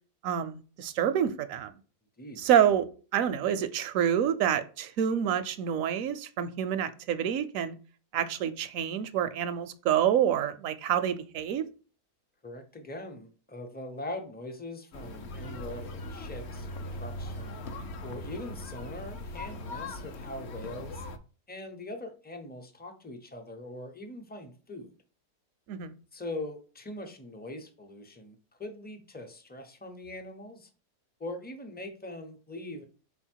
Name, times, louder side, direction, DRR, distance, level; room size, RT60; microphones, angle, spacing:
voice 1, 0.2-1.7 2.4-2.9 3.1-7.8 8.1-11.6 25.7-25.9, right 9 dB, 70° right, 0.9 m, -27 dB
voice 2, 2.2-2.5 12.4-17.6 18.0-21.1 21.5-24.9 26.1-30.7 31.2-32.8, left 1 dB, 15° left, 0.4 m, -42 dB
sound 1, 14.9-21.2, left 1 dB, 60° left, 0.7 m, -40 dB
5.6 x 4.2 x 4.5 m
omnidirectional pair, 1.7 m